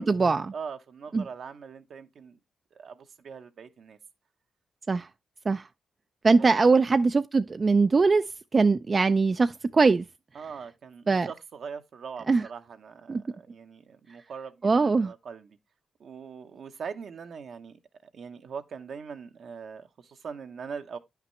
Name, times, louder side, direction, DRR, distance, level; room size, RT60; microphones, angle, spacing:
voice 1, 0.0-0.4 1.1-1.2 4.9-5.1 5.5-5.7 6.2-8.2 8.5-10.0 11.1-11.3 12.3-12.4 13.1-13.2 14.6-15.1, right 4 dB, 40° right, 0.3 m, -21 dB
voice 2, 0.5-2.4 2.7-4.0 6.4-6.6 10.3-15.6 16.0-21.0, right 6 dB, 70° right, 0.9 m, -42 dB
9.7 x 5.8 x 3.1 m
cardioid pair, 70°, 0 cm